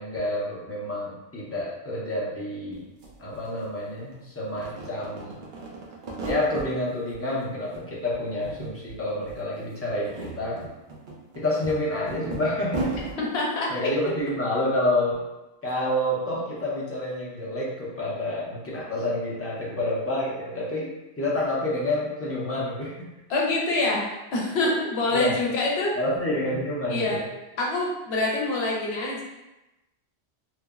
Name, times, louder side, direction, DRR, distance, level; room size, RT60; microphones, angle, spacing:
voice 1, 0.0-2.8 3.2-5.4 6.2-10.6 11.3-13.1 13.7-15.2 15.6-20.9 21.2-23.1 25.1-25.4 26.0-27.2, left 1 dB, 20° left, -6 dB, 0.4 m, -28 dB
sound 1, 2.7-2.8 3.0-4.2 4.5-6.7 7.1-7.8 8.1-9.0 9.2-9.4 9.9-13.2, right 3 dB, 55° right, 0.6 m, -35 dB
voice 2, 13.2-13.7 23.3-24.0 24.3-25.9 26.9-27.2 27.6-29.2, left 2 dB, 70° left, -3 dB, 0.9 m, -25 dB
3.1 x 2.0 x 2.3 m, 1.0 s
omnidirectional pair, 1.1 m